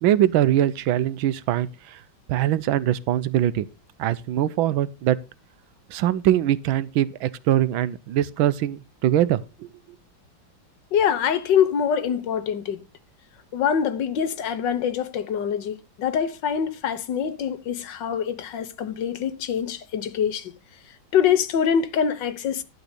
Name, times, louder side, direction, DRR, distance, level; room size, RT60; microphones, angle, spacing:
voice 1, 0.0-2.0 2.3-3.7 4.0-5.2 5.9-9.7, right 12 dB, 90° right, 1.5 m, -22 dB
voice 2, 10.9-12.8 13.5-20.5 21.1-22.6, left 8 dB, 70° left, 1.5 m, -24 dB
12.0 x 4.1 x 8.0 m
omnidirectional pair, 2.2 m